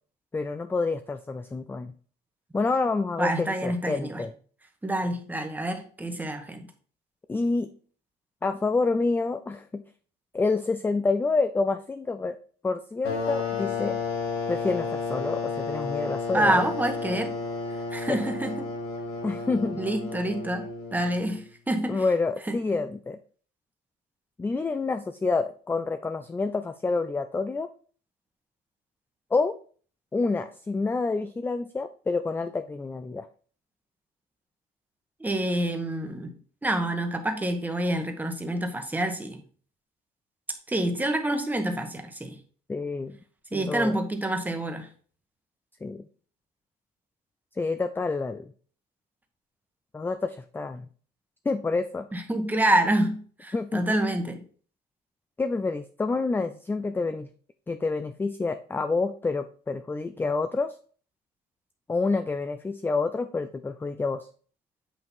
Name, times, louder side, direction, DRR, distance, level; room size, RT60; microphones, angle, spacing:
voice 1, 0.3-1.9 2.5-4.3 7.3-7.7 8.4-9.8 10.3-12.4 12.6-14.0 14.5-16.6 18.1-18.2 19.2-19.8 21.9-23.2 24.4-27.7 29.3-29.5 30.1-33.3 42.7-43.2 43.5-43.9 45.8-46.0 47.6-48.5 49.9-50.9 51.5-52.1 53.5-53.8 55.4-57.3 57.7-60.8 61.9-64.3, left 3 dB, 10° left, 10 dB, 0.4 m, -28 dB
voice 2, 3.2-4.2 4.8-6.6 16.3-17.3 17.9-18.7 19.8-22.0 22.5-22.6 35.2-36.3 36.6-39.4 40.7-42.4 43.5-44.9 52.1-54.4, right 1 dB, 10° right, 5 dB, 1.2 m, -27 dB
sound 1, 13.0-21.4, left 4 dB, 85° left, 2.7 m, -32 dB
8.4 x 2.9 x 5.4 m, 0.43 s
cardioid pair, 110°, 17 cm